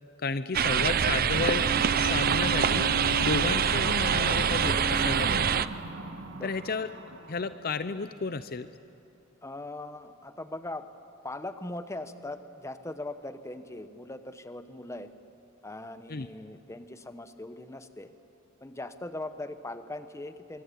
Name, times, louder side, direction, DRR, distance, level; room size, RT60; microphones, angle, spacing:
voice 1, 0.2-5.6 6.4-6.9 7.3-8.7 16.1-16.3, left 4 dB, 45° left, 12 dB, 0.6 m, -32 dB
sound 1, 0.5-5.7, right 7 dB, 45° right, 0.6 m, -25 dB
sound 2, 1.3-7.7, right 1 dB, 70° right, 2.1 m, -36 dB
voice 2, 6.3-6.8 9.4-10.9 11.2-15.1 15.6-18.1 18.6-20.6, left 2 dB, 15° left, 10 dB, 0.9 m, -40 dB
24.5 x 23.5 x 8.4 m, 2.8 s
head